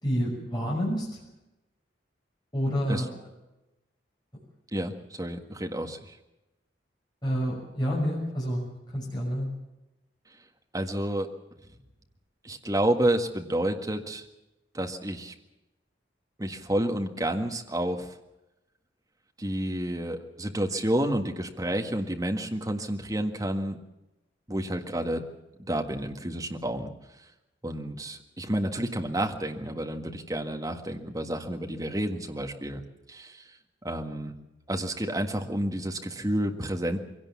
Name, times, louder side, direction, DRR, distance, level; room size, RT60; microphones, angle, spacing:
voice 1, 0.0-1.2 2.5-3.1 7.2-9.5, equal, 25° left, -4 dB, 6.1 m, -29 dB
voice 2, 4.7-6.2 10.7-11.3 12.4-14.2 14.7-15.3 16.4-18.1 19.4-23.8 24.5-25.2 25.7-26.9 27.6-32.8 33.1-33.4 33.8-34.3 34.7-37.0, right 1 dB, 20° right, 4 dB, 1.7 m, -30 dB
23.0 x 17.5 x 7.3 m, 0.96 s
head